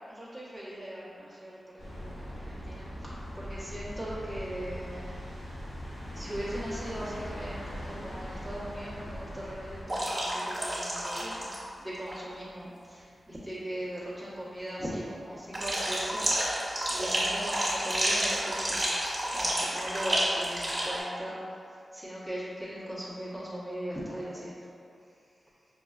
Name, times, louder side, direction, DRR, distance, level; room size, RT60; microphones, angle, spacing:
voice 1, 0.1-1.6 1.9-5.1 6.1-7.6 7.8-11.5 11.8-18.9 19.3-21.3 21.9-24.5, equal, 15° left, -10 dB, 1.1 m, -39 dB
sound 1, 1.8-9.8, equal, 85° left, 0.8 m, -40 dB
sound 2, 9.9-11.6 11.9-12.1 15.5-21.0, right 1 dB, 30° right, 1.3 m, -30 dB
5.3 x 2.3 x 2.4 m, 2.4 s
cardioid pair, 60°, 0 cm